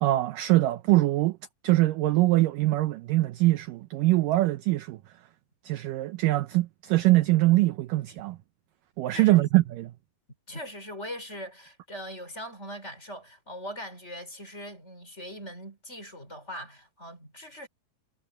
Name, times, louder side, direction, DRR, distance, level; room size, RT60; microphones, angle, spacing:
voice 1, 0.0-1.4 1.6-5.0 5.7-8.4 9.0-9.9, right 18 dB, 80° right, 1.9 m, -23 dB
voice 2, 9.1-9.4 10.5-17.7, equal, 15° left, 4.8 m, -41 dB
omnidirectional pair, 4.7 m